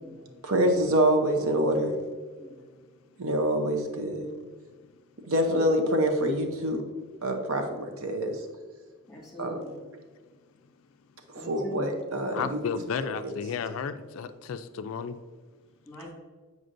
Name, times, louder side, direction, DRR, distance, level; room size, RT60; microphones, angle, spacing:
voice 1, 0.4-2.0 3.2-4.3 5.3-6.8 7.2-8.4 9.4-9.5 11.3-12.6 13.0-13.3, right 1 dB, 70° right, 5 dB, 0.7 m, -26 dB
voice 2, 9.1-9.8 11.4-11.9 15.8-16.1, equal, ahead, -4 dB, 1.6 m, -42 dB
voice 3, 12.3-15.2, left 6 dB, 65° left, 11 dB, 0.3 m, -33 dB
7.8 x 5.0 x 2.6 m, 1.5 s
head